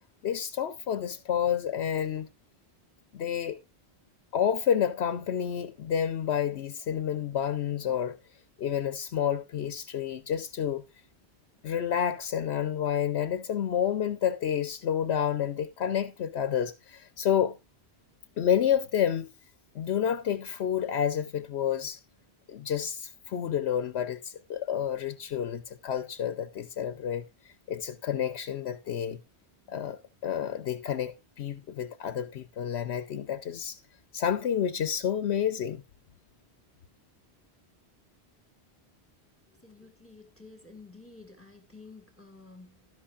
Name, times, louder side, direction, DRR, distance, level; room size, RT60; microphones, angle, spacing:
voice 1, 0.2-2.3 3.1-3.6 4.3-8.2 8.6-10.8 11.6-17.6 18.4-19.3 19.7-22.0 22.5-27.2 27.7-29.2 29.7-33.8 34.1-35.8, left 9 dB, 75° left, 1.0 m, -29 dB
voice 2, 39.5-42.9, left 3 dB, 10° left, 1.8 m, -51 dB
12.5 x 11.5 x 2.4 m
omnidirectional pair, 1.1 m